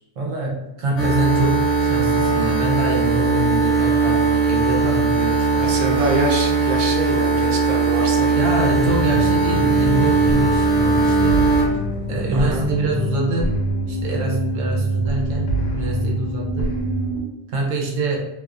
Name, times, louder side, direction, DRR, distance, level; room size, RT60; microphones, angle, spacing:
voice 1, 0.2-5.8 8.3-11.6 12.1-13.6 13.9-16.7 17.5-18.2, right 2 dB, 80° right, -2 dB, 1.0 m, -25 dB
sound 1, 1.0-11.7, right 4 dB, 45° left, 0.6 m, -19 dB
voice 2, 5.6-8.9 12.3-12.6, right 2 dB, 60° right, 0 dB, 0.6 m, -25 dB
sound 2, 8.7-17.2, equal, 75° left, 0.9 m, -25 dB
2.6 x 2.1 x 2.4 m, 0.96 s
omnidirectional pair, 1.3 m